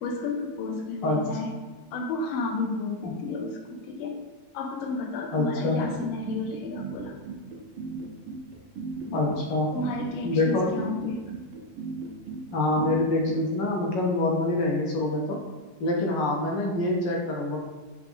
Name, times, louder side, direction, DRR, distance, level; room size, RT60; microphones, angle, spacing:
voice 1, 0.0-1.5 1.9-4.2 4.5-7.2 9.7-11.2, left 3 dB, 85° left, 3 dB, 1.4 m, -32 dB
voice 2, 5.3-5.8 9.1-9.7 10.2-10.7 12.5-15.4 15.8-17.6, left 2 dB, 70° left, 0 dB, 1.2 m, -25 dB
sound 1, 5.7-13.4, right 5 dB, 85° right, 1.4 m, -36 dB
4.5 x 2.5 x 3.4 m, 1.3 s
omnidirectional pair, 2.3 m